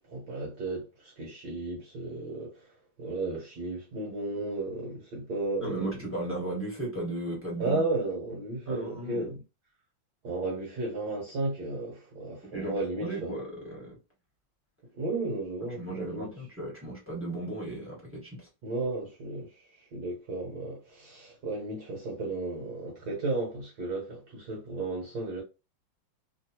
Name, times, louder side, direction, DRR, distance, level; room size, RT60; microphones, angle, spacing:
voice 1, 0.0-2.6 3.0-5.9 7.6-9.4 10.2-13.3 15.0-16.3 18.6-19.5 19.9-25.4, right 2 dB, 55° right, 1.5 m, -34 dB
voice 2, 5.6-7.8 8.6-9.3 12.4-14.0 15.6-18.5, right 2 dB, 10° right, 1.1 m, -36 dB
3.3 x 2.6 x 2.8 m
omnidirectional pair, 2.2 m